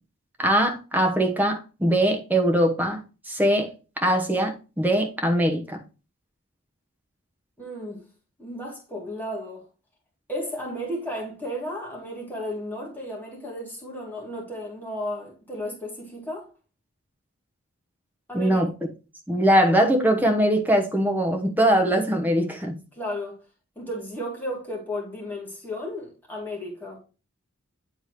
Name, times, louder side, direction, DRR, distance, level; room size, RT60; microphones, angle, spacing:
voice 1, 0.4-5.8 18.3-18.7 19.3-22.8, right 1 dB, 10° right, 1.0 m, -22 dB
voice 2, 7.6-8.0 8.4-9.6 10.3-16.5 18.3-18.6 22.9-23.4 23.8-27.0, equal, 10° left, 2.0 m, -34 dB
9.1 x 3.6 x 3.2 m
head